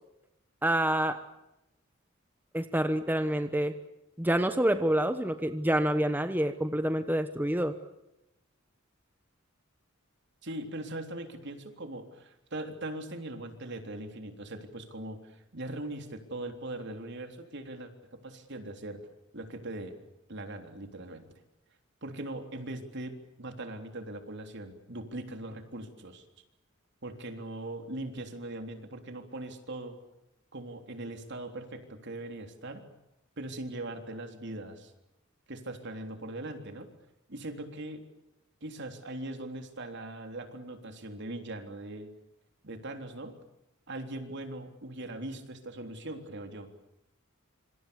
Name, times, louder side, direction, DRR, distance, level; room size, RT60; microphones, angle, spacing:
voice 1, 0.6-1.2 2.5-3.8 4.2-7.8, right 1 dB, 10° right, 9 dB, 1.0 m, -27 dB
voice 2, 10.4-19.0 19.3-20.0 20.3-21.3 22.0-26.2 27.0-30.0 30.5-32.8 33.4-34.9 35.5-36.9 37.3-38.0 38.6-42.1 42.6-43.4 43.9-46.7, right 1 dB, 60° right, 6 dB, 3.6 m, -40 dB
26.5 x 26.0 x 7.1 m, 0.88 s
head